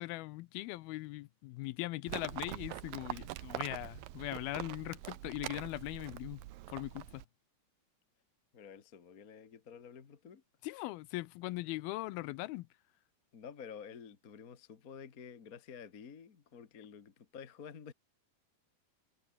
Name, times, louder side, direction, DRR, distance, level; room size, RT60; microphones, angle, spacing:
voice 1, 0.0-6.4 6.7-7.2 10.6-12.7, left 19 dB, 90° left, 2.6 m, -40 dB
Livestock farm animals working animals, 2.1-7.2, right 16 dB, 75° right, 2.5 m, -44 dB
voice 2, 8.5-10.4 13.3-17.9, left 7 dB, 45° left, 1.2 m, -50 dB
omnidirectional pair, 4.3 m